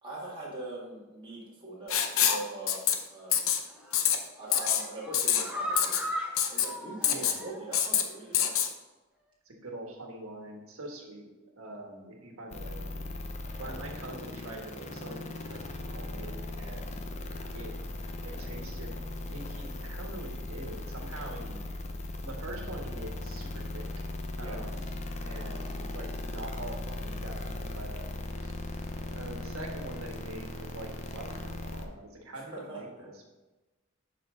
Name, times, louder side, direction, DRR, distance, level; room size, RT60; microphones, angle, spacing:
voice 1, 0.0-2.8 3.1-3.5 4.4-6.0 6.5-8.5 13.4-13.8 24.4-24.6 28.9-29.2 32.3-32.8, right 2 dB, 25° right, -6 dB, 2.0 m, -42 dB
Writing, 1.9-2.4 2.7-2.9 3.3-3.6 3.9-4.2 4.5-4.8 5.1-5.4 5.8-6.0 6.4-6.7 7.0-7.4 7.7-8.0 8.3-8.7, left 9 dB, 70° left, 0.7 m, -25 dB
sound 1, 3.7-4.0 4.4-7.8 8.1-8.2 8.6-8.7, equal, 5° right, 1.0 m, -38 dB
voice 2, 7.1-7.4 9.4-13.1 13.6-17.0 17.5-17.7 18.2-19.0 19.3-21.6 22.2-23.9 24.4-24.9 25.2-28.9 29.1-33.3, right 1 dB, 80° right, 1 dB, 1.5 m, -44 dB
sound 2, 12.5-31.8, left 1 dB, 30° left, 0.7 m, -38 dB
11.5 x 4.3 x 3.8 m, 1.1 s
head